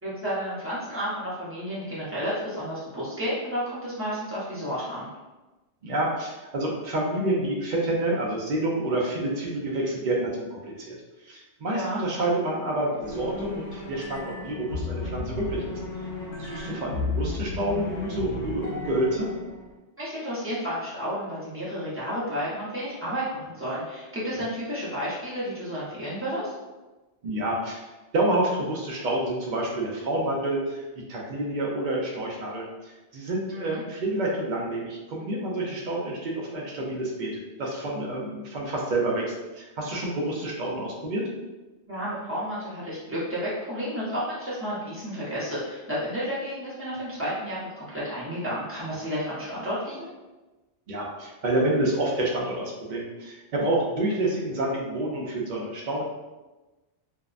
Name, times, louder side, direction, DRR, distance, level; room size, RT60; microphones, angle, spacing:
voice 1, 0.0-5.1 11.7-12.0 16.5-16.7 20.0-26.5 33.5-33.8 41.9-50.1, equal, 15° right, -10 dB, 0.7 m, -31 dB
voice 2, 5.8-10.9 11.2-15.7 16.4-19.3 27.2-27.9 28.1-39.2 39.5-41.2 50.9-56.0, right 1 dB, 55° right, -2 dB, 0.6 m, -28 dB
sound 1, 13.0-19.7, left 2 dB, 80° left, 1.0 m, -34 dB
2.6 x 2.1 x 2.4 m, 1.1 s
omnidirectional pair, 1.2 m